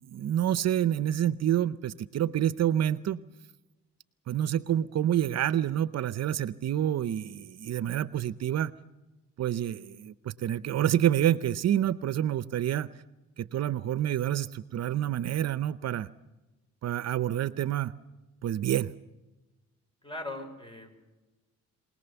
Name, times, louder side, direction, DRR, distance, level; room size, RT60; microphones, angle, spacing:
voice 1, 0.1-3.2 4.3-8.7 9.4-12.9 13.4-16.1 16.8-17.9 18.4-18.9, right 11 dB, 60° right, 16 dB, 0.7 m, -28 dB
voice 2, 20.0-21.0, left 2 dB, 15° left, 7 dB, 5.8 m, -39 dB
24.5 x 19.0 x 7.0 m, 1.1 s
cardioid pair, 90°, 30 cm